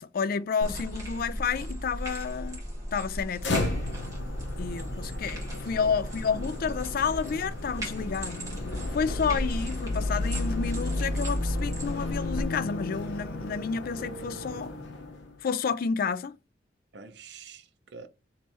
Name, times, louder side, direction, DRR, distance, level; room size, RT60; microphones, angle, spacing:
voice 1, 0.0-2.6 2.9-3.5 4.6-8.5 8.9-14.7 15.4-16.4, left 5 dB, 50° left, 0.4 m, -30 dB
sound 1, 0.6-12.4, equal, 20° right, 1.5 m, -35 dB
sound 2, 3.4-15.4, left 2 dB, 75° left, 0.9 m, -34 dB
voice 2, 5.3-5.9 16.9-18.1, right 4 dB, 65° right, 0.8 m, -47 dB
3.3 x 3.2 x 4.1 m
head